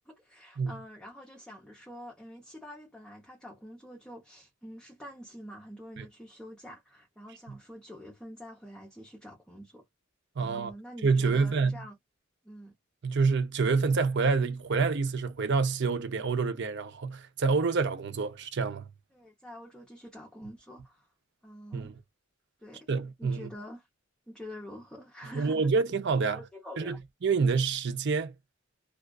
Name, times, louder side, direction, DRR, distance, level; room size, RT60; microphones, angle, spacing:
voice 1, 0.1-9.8 10.4-11.9 12.4-12.7 19.1-21.1 21.4-22.0 22.6-22.9 23.2-23.9 24.3-25.7 26.3-27.0, equal, 5° left, 0.7 m, -46 dB
voice 2, 10.4-10.7 11.0-11.8 13.0-18.8 21.7-21.9 22.9-23.5 25.3-26.4 26.8-27.0 27.2-28.3, right 4 dB, 55° right, 0.6 m, -27 dB
2.3 x 2.3 x 2.3 m
head